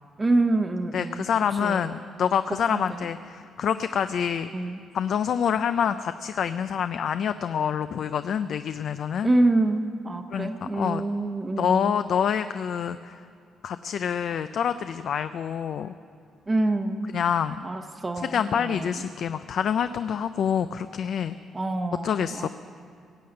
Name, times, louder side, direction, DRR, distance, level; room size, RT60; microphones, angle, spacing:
voice 1, 0.2-1.3 1.6-2.0 2.7-3.1 4.5-4.8 9.2-12.0 16.5-17.2 17.6-19.0 21.5-22.5, right 2 dB, 25° right, 7 dB, 0.9 m, -26 dB
voice 2, 0.9-4.5 4.9-9.3 10.3-11.0 11.6-13.3 13.6-15.9 17.1-17.6 18.2-21.4 22.0-22.5, left 8 dB, 65° left, 11 dB, 0.4 m, -27 dB
17.0 x 7.7 x 8.7 m, 2.3 s
cardioid pair, 90°, 0 cm